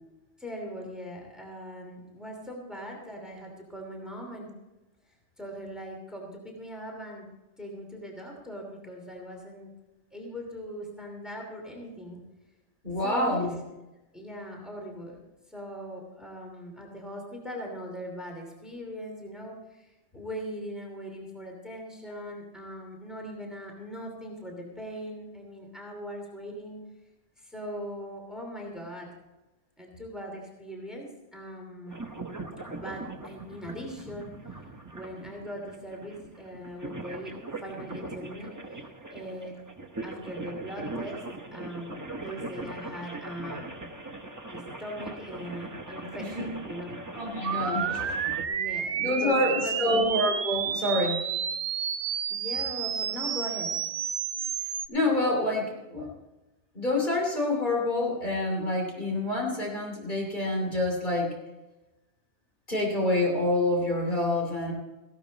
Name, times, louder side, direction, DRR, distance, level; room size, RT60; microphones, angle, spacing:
voice 1, 0.4-4.5 5.4-7.3 7.6-9.7 10.1-12.2 13.0-13.5 14.1-15.2 15.5-26.8 27.4-29.1 29.8-32.0 32.7-34.4 34.9-38.5 39.1-39.6 40.0-41.2 41.5-43.9 44.5-47.0 48.4-49.8 52.3-53.8, equal, ahead, 0 dB, 2.7 m, -40 dB
voice 2, 12.8-13.5 46.2-46.5 47.2-48.2 49.0-51.2 54.9-56.1 56.7-61.3 62.7-64.7, left 1 dB, 40° left, -1 dB, 3.1 m, -27 dB
sound 1, 31.9-48.4, right 2 dB, 15° right, 1.1 m, -40 dB
sound 2, 47.4-54.9, right 8 dB, 75° right, 1.0 m, -31 dB
16.0 x 12.0 x 4.1 m, 1.0 s
omnidirectional pair, 1.2 m